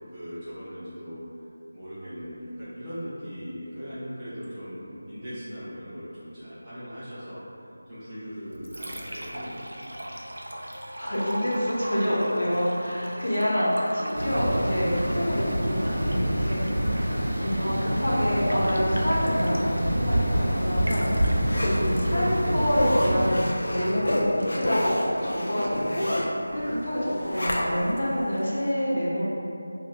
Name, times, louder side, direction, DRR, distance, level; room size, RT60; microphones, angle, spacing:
voice 1, 0.1-1.2 1.7-7.4 7.9-10.0 16.8-17.6 26.5-27.0, equal, 10° right, -16 dB, 0.5 m, -39 dB
Liquid, 8.3-27.3, equal, 80° right, 0.4 m, -41 dB
voice 2, 10.7-16.9 17.4-29.2, equal, 85° left, -7 dB, 1.0 m, -27 dB
sound 1, 14.1-23.3, equal, 50° right, 0.8 m, -26 dB
Zipper (clothing), 20.4-28.0 28.4-28.5, left 1 dB, 55° left, 0.4 m, -30 dB
2.5 x 2.1 x 3.7 m, 2.6 s
figure-of-eight pair, 180°, 0 cm